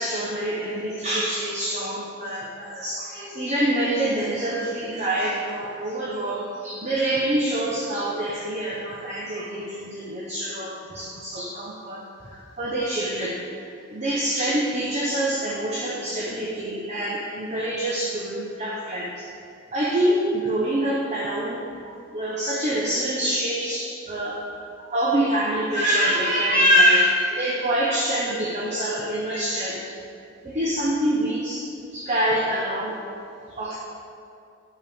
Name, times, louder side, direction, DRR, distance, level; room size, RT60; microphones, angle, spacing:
voice 1, 0.0-13.4 13.9-19.3 19.7-24.4 24.8-29.9 30.4-31.7 31.9-33.0 33.5-33.8, right 1 dB, 35° right, -4 dB, 0.8 m, -25 dB
11.0 x 6.7 x 3.4 m, 2.5 s
head